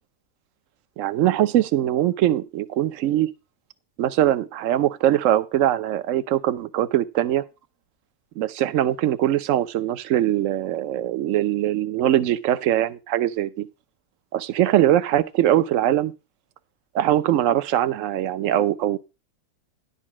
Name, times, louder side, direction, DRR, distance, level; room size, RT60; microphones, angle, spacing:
voice 1, 1.0-3.3 4.0-7.4 8.4-13.7 14.3-16.1 16.9-19.0, right 12 dB, 60° right, 1.0 m, -22 dB
11.5 x 4.0 x 7.3 m
omnidirectional pair, 1.7 m